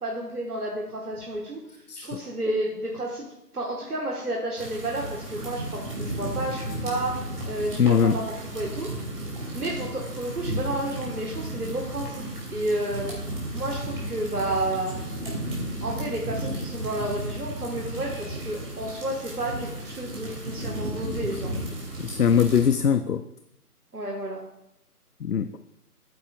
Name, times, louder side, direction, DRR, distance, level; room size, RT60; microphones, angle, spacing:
voice 1, 0.0-1.6 2.0-3.3 3.5-8.2 8.5-8.9 9.5-12.2 12.5-13.0 13.5-14.9 15.8-21.5 23.9-24.4, right 1 dB, 70° right, -2 dB, 1.6 m, -31 dB
voice 2, 1.9-2.2 7.8-8.2 22.0-23.2 25.2-25.5, left 7 dB, 75° left, 11 dB, 0.6 m, -21 dB
sound 1, 4.6-22.7, right 1 dB, 35° right, 2.9 m, -34 dB
13.0 x 9.3 x 2.4 m, 0.84 s
figure-of-eight pair, 155°, 47 cm